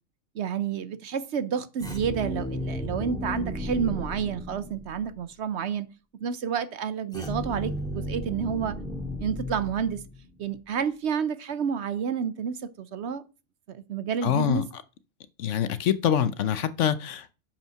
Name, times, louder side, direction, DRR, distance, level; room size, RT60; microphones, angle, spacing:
voice 1, 0.3-5.9 6.2-8.8 9.2-10.0 10.4-13.2 13.7-14.6, right 7 dB, 60° right, 0.9 m, -29 dB
sound 1, 1.8-5.1 7.1-10.4, equal, 5° left, 1.7 m, -34 dB
voice 2, 14.2-14.6 15.4-17.3, left 9 dB, 70° left, 1.0 m, -25 dB
7.1 x 5.5 x 5.6 m
omnidirectional pair, 1.4 m